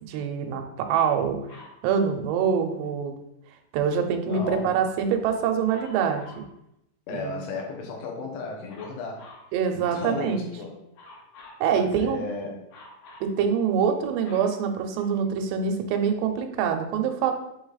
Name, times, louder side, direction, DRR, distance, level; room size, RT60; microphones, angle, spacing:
voice 1, 0.0-1.4 1.8-3.2 3.7-6.4 7.1-7.3 9.5-10.4 11.6-12.2 13.2-17.3, right 7 dB, 90° right, 5 dB, 2.9 m, -25 dB
Dog, 1.5-1.8 5.7-6.5 8.7-9.5 10.9-11.7 12.7-13.3 13.9-15.4 16.1-16.2, left 2 dB, 65° left, 3.0 m, -49 dB
voice 2, 4.3-4.8 7.1-9.3 9.7-10.8 11.7-12.6, left 3 dB, 80° left, 0 dB, 3.2 m, -34 dB
7.6 x 3.4 x 3.9 m, 0.80 s
omnidirectional pair, 4.8 m